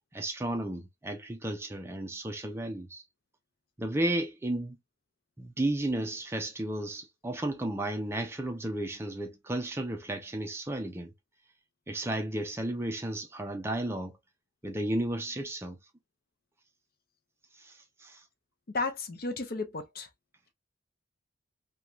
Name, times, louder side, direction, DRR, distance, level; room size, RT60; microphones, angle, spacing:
voice 1, 0.1-3.0 3.8-4.8 5.4-11.1 11.9-14.2 14.6-15.8 17.6-18.2, right 1 dB, 10° right, 0.4 m, -33 dB
voice 2, 18.7-20.1, left 3 dB, 50° left, 0.5 m, -33 dB
3.0 x 2.3 x 2.4 m
head